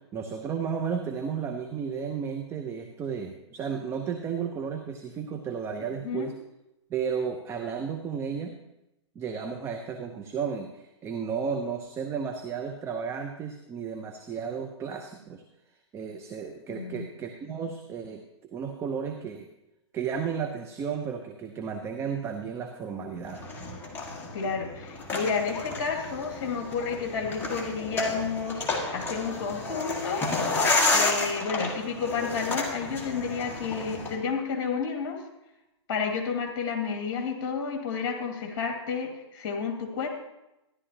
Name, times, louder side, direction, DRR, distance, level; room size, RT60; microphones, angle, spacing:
voice 1, 0.1-6.3 6.9-8.5 9.2-15.4 15.9-19.5 19.9-23.4, right 6 dB, 15° right, 5 dB, 0.6 m, -33 dB
voice 2, 16.7-17.0 24.3-30.3 30.9-35.2 35.9-40.1, left 5 dB, 45° left, 2 dB, 2.4 m, -31 dB
sound 1, 23.3-34.2, left 3 dB, 15° left, 1.6 m, -31 dB
13.5 x 11.0 x 2.9 m, 0.92 s
hypercardioid pair, 130°, 15 cm